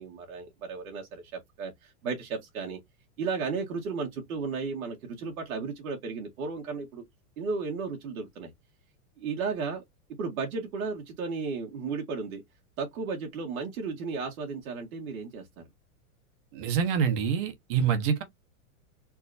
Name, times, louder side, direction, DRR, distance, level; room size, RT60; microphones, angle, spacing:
voice 1, 0.0-2.8 3.2-7.0 7.4-8.5 9.2-9.8 10.2-12.4 12.8-15.6, right 4 dB, 85° right, 2.0 m, -34 dB
voice 2, 16.5-18.2, right 7 dB, 40° right, 1.1 m, -26 dB
4.5 x 2.9 x 2.6 m
supercardioid pair, 165°, 41 cm